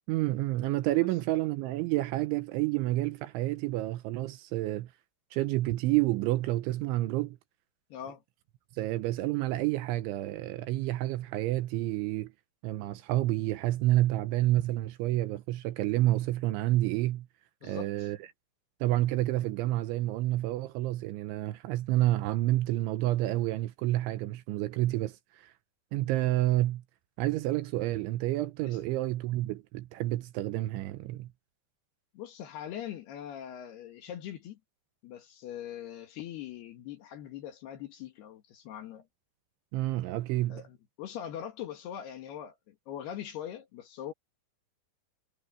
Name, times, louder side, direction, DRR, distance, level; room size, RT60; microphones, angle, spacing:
voice 1, 0.1-4.9 5.3-7.4 8.7-12.3 12.6-17.3 17.6-18.2 18.8-25.5 25.9-26.8 27.2-31.3 39.7-40.6, right 16 dB, 80° right, 3.0 m, -29 dB
voice 2, 7.9-8.2 17.6-18.1 28.6-28.8 32.1-34.6 35.0-39.0 40.5-44.1, left 10 dB, 65° left, 3.1 m, -42 dB
omnidirectional pair, 5.8 m